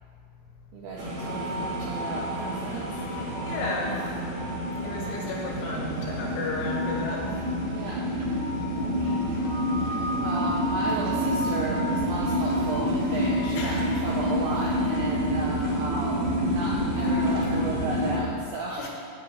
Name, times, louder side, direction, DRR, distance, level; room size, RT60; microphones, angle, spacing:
voice 1, 0.7-2.8 7.7-8.1 8.7-9.2 10.2-18.9, right 2 dB, 80° right, -4 dB, 2.3 m, -35 dB
sound 1, 1.0-18.2, equal, 65° right, 2.1 m, -28 dB
sound 2, 1.2-18.2, equal, 35° left, 2.5 m, -37 dB
voice 2, 3.5-4.1 4.8-7.3 13.5-13.8 18.8-18.9, left 2 dB, 75° left, -1 dB, 3.7 m, -33 dB
9.2 x 8.7 x 4.5 m, 2.1 s
omnidirectional pair, 5.6 m